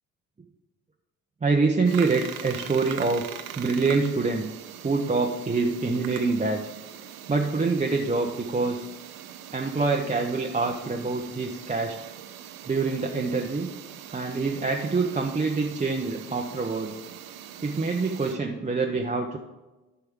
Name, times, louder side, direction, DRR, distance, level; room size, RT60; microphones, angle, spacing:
voice 1, 1.4-4.5 4.8-6.6 7.3-8.9 9.5-12.1 12.7-13.7 14.1-17.0 17.6-19.4, right 4 dB, 15° right, 0 dB, 0.9 m, -26 dB
sound 1, 1.8-18.3, right 10 dB, 60° right, 0.8 m, -42 dB
14.0 x 5.7 x 3.7 m, 1.1 s
figure-of-eight pair, 50°, 42 cm